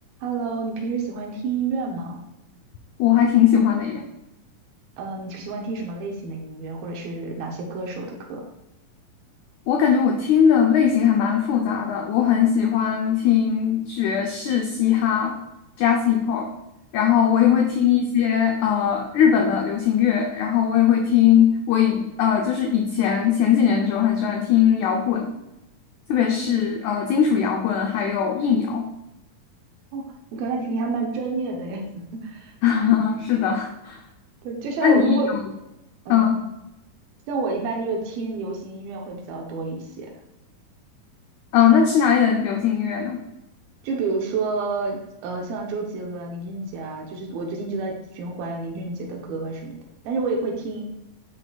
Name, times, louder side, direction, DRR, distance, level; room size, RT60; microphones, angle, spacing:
voice 1, 0.2-2.2 5.0-8.4 17.4-17.6 29.9-32.5 34.4-35.3 36.1-36.4 37.3-40.1 43.8-49.8 50.0-50.8, right 4 dB, 85° right, 0 dB, 2.7 m, -29 dB
voice 2, 3.0-4.0 9.7-15.4 15.8-16.5 16.9-25.4 26.1-28.9 32.6-34.0 34.8-35.2 36.1-36.4 41.5-43.2, left 8 dB, 90° left, 2 dB, 1.6 m, -20 dB
9.3 x 4.9 x 2.3 m, 0.92 s
omnidirectional pair, 4.1 m